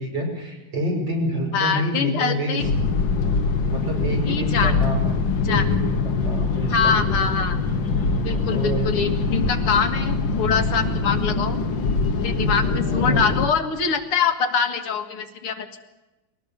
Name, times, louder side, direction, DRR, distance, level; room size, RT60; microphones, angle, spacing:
voice 1, 0.0-2.6 3.7-5.1 5.4-7.1 8.5-8.9 12.3-13.4, equal, 50° right, 0 dB, 6.9 m, -28 dB
voice 2, 1.5-2.6 4.3-4.7 5.4-5.6 6.7-7.6 8.2-11.6 12.2-15.8, left 6 dB, 80° left, 6 dB, 2.7 m, -24 dB
sound 1, 2.6-13.5, left 4 dB, 60° left, 2.1 m, -23 dB
22.5 x 19.0 x 6.7 m, 1.1 s
omnidirectional pair, 2.4 m